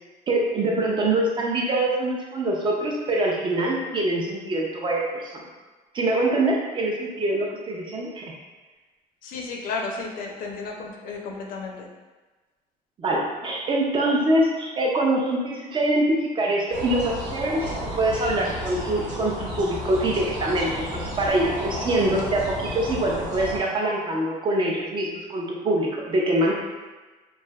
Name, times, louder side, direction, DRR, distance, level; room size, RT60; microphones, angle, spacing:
voice 1, 0.3-5.4 5.9-8.3 13.0-17.7 18.0-26.5, right 1 dB, 30° right, -2 dB, 0.5 m, -24 dB
voice 2, 9.2-11.9, left 4 dB, 60° left, 1 dB, 0.5 m, -33 dB
sound 1, 16.7-23.6, equal, 50° right, 1.0 m, -32 dB
3.1 x 2.5 x 2.3 m, 1.2 s
cardioid pair, 150°, 17 cm